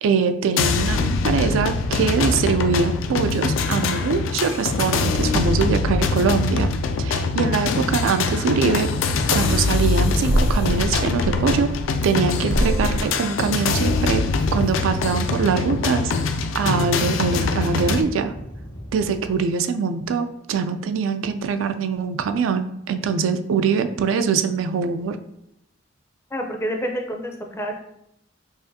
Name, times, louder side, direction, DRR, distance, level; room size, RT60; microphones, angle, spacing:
voice 1, 0.0-6.7 7.0-8.9 9.3-11.7 12.0-14.2 14.5-16.1 16.5-18.3 18.9-25.2, right 5 dB, 85° right, 9 dB, 0.3 m, -23 dB
sound 1, 0.6-18.0, left 4 dB, 85° left, 0.3 m, -23 dB
sound 2, 10.1-12.2 12.5-13.2, equal, 65° right, 0.8 m, -24 dB
sound 3, 14.3-19.4, equal, 60° left, 0.8 m, -38 dB
voice 2, 26.3-27.8, equal, 15° left, 2 dB, 0.4 m, -28 dB
4.8 x 2.5 x 2.7 m, 0.78 s
head